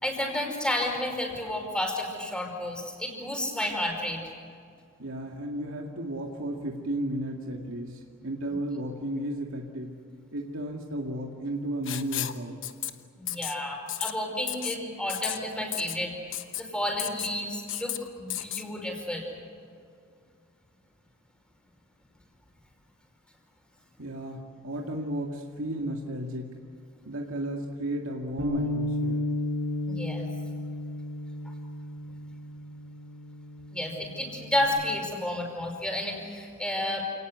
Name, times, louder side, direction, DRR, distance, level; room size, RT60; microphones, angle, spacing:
voice 1, 0.0-4.2 13.2-16.1 16.6-19.4 29.9-30.3 33.7-37.0, left 1 dB, 5° left, 1 dB, 5.2 m, -31 dB
voice 2, 5.0-10.0 10.3-12.6 24.0-26.5 27.1-29.3, right 1 dB, 75° right, 0 dB, 2.2 m, -33 dB
Writing, 11.9-12.4 12.6-12.9 13.3-13.6 13.9-14.1 14.5-14.8 15.1-15.4 15.7-16.0 16.3-16.6 17.0-17.3 17.7-18.0 18.3-18.6, left 13 dB, 60° left, 1.2 m, -33 dB
Bass guitar, 28.4-34.6, left 1 dB, 55° right, 3.7 m, -33 dB
28.5 x 19.0 x 8.2 m, 2.3 s
head